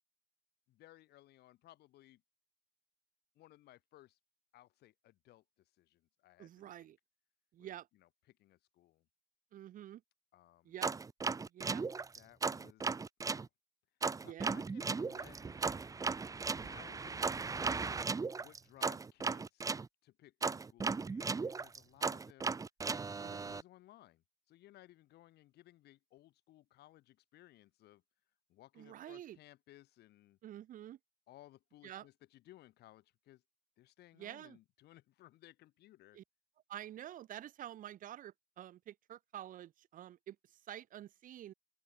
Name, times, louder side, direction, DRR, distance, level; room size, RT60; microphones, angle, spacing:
voice 1, 0.7-2.2 3.3-4.2 4.5-5.4 5.8-6.9 7.6-9.0 10.3-10.8 12.1-12.9 13.2-13.5 14.2-15.7 16.5-17.4 18.4-19.7 20.0-22.5 23.2-28.0 28.5-30.4 31.3-33.4 33.8-36.2, left 15 dB, 75° left, 3.2 m, -61 dB
voice 2, 6.4-7.0 7.5-7.9 9.5-10.0 10.7-10.9 11.5-11.9 14.3-14.5 23.1-23.6 28.8-29.4 30.4-31.0 31.8-32.1 34.2-34.6 36.1-36.2 36.7-40.4 40.7-41.5, right 12 dB, 55° right, 0.6 m, -48 dB
sound 1, 10.8-13.5 14.0-19.9 20.4-23.6, right 4 dB, 20° right, 0.8 m, -36 dB
open air
cardioid pair, 110°, 17 cm